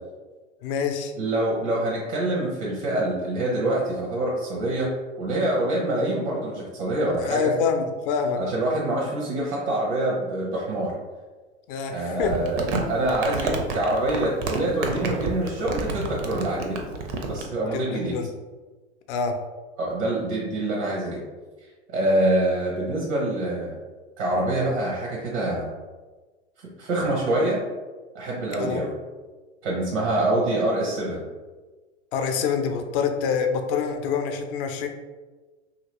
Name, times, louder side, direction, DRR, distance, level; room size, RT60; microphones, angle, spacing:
voice 1, 0.6-1.1 7.2-8.4 11.7-12.3 17.7-18.3 19.1-19.3 28.6-28.8 30.3-30.4 32.1-34.9, left 6 dB, 50° left, 5 dB, 0.5 m, -26 dB
voice 2, 1.2-4.9 5.2-7.5 8.4-10.9 11.9-16.8 17.3-18.2 19.8-21.2 21.9-23.8 24.2-25.7 26.6-27.6 28.1-28.9 29.6-31.2, right 1 dB, 75° right, -3 dB, 1.0 m, -25 dB
Crumpling crinkling, 12.2-17.5, right 4 dB, 45° right, 0.6 m, -30 dB
2.8 x 2.8 x 2.9 m, 1.3 s
hypercardioid pair, 105°, 35 cm